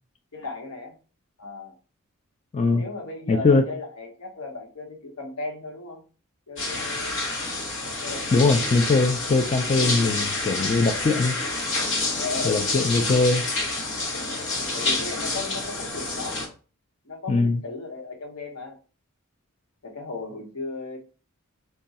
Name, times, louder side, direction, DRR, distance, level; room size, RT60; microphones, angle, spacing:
voice 1, 0.3-0.9 1.4-1.7 2.7-6.0 6.5-7.2 8.0-8.3 12.2-13.0 14.7-16.4 17.0-18.8 19.8-21.0, left 3 dB, 85° left, 2 dB, 1.1 m, -36 dB
voice 2, 3.3-3.6 8.3-11.4 12.4-13.4 17.3-17.6, left 3 dB, 30° left, 4 dB, 0.4 m, -21 dB
sound 1, 6.6-16.5, left 2 dB, 60° left, 1.1 m, -28 dB
3.6 x 2.3 x 4.1 m, 0.36 s
head